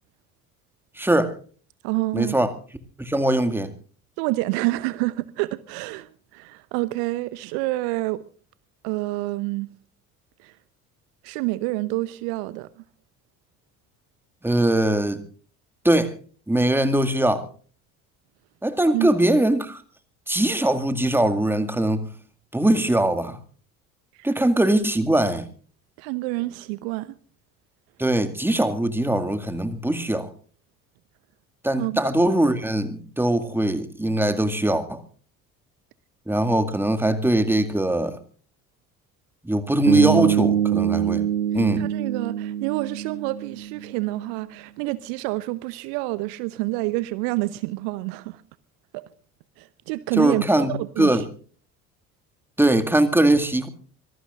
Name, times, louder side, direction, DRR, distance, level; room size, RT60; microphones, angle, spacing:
voice 1, 1.0-1.4 2.1-2.5 3.0-3.7 14.4-15.2 15.8-16.1 16.5-17.4 18.6-19.8 20.3-22.1 22.5-23.4 24.2-25.5 28.0-30.3 31.6-35.0 36.3-38.2 39.4-41.2 41.5-41.8 50.2-51.2 52.6-53.7, right 1 dB, 5° right, 2.0 m, -21 dB
voice 2, 1.8-2.4 4.2-8.2 8.8-9.7 10.4-10.6 11.2-12.8 18.9-19.2 24.1-24.3 26.0-27.1 31.8-32.0 41.5-48.4 48.9-49.0 49.6-51.3, right 20 dB, 55° right, 0.8 m, -28 dB
Bass guitar, 39.9-44.0, right 10 dB, 80° right, 1.7 m, -24 dB
25.0 x 19.0 x 2.5 m
figure-of-eight pair, 55°, 44 cm